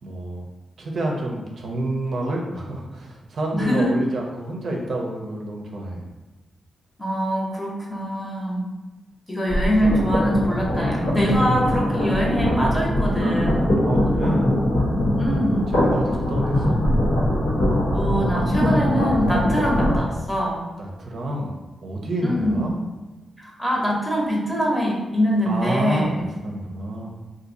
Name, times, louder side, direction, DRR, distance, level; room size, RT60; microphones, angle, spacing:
voice 1, 0.0-0.4 0.8-6.0 11.2-11.7 13.9-14.5 15.7-16.8 20.8-21.5 21.8-22.8 25.4-26.1 26.4-27.1, right 1 dB, 60° right, 0 dB, 0.5 m, -28 dB
voice 2, 3.5-4.0 7.0-8.7 9.3-13.8 15.2-15.7 17.9-20.6 22.2-22.7 23.4-26.2, equal, 10° left, -3 dB, 0.8 m, -23 dB
sound 1, 9.5-20.0, left 1 dB, 85° left, 1.1 m, -22 dB
2.6 x 2.6 x 3.8 m, 1.2 s
cardioid pair, 100°, 0 cm